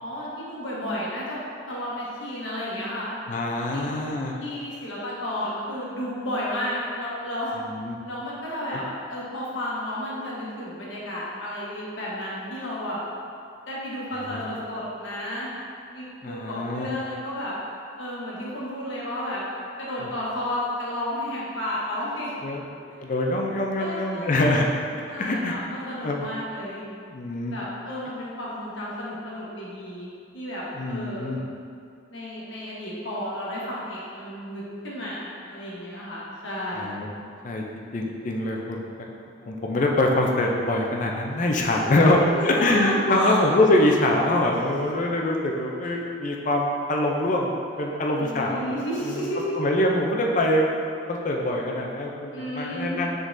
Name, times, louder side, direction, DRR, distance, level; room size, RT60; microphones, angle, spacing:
voice 1, 0.0-1.4 1.7-3.1 3.7-3.8 4.4-7.6 8.1-13.0 13.7-15.5 15.9-17.5 18.0-19.4 19.8-22.3 23.8-24.6 25.1-26.8 27.5-31.4 32.1-36.9 41.6-41.8 42.3-43.4 44.7-44.8 47.8-49.5 52.3-52.9, left 1 dB, 85° left, -6 dB, 1.1 m, -32 dB
voice 2, 3.3-4.4 7.6-8.0 8.7-8.8 14.2-14.6 16.2-16.9 20.0-20.1 22.4-22.6 23.0-24.7 25.2-25.6 26.0-26.3 27.1-27.5 30.7-31.4 36.8-37.1 37.4-37.6 37.9-38.8 39.5-48.8 49.0-49.3 49.6-50.7 51.1-53.1, left 1 dB, 40° left, 0 dB, 0.4 m, -24 dB
5.0 x 3.7 x 2.6 m, 2.4 s
head